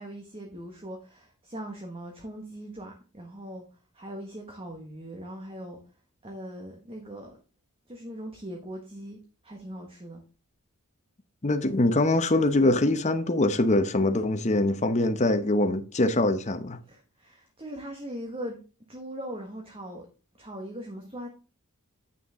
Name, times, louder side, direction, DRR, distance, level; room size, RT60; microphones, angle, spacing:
voice 1, 0.0-3.6 3.9-5.8 6.2-7.4 7.9-9.2 9.4-10.2 16.9-18.6 18.9-20.1 20.4-21.3, equal, 25° right, 1.5 m, -40 dB
voice 2, 11.4-16.8, left 2 dB, 30° left, 0.9 m, -23 dB
9.2 x 6.5 x 3.7 m
head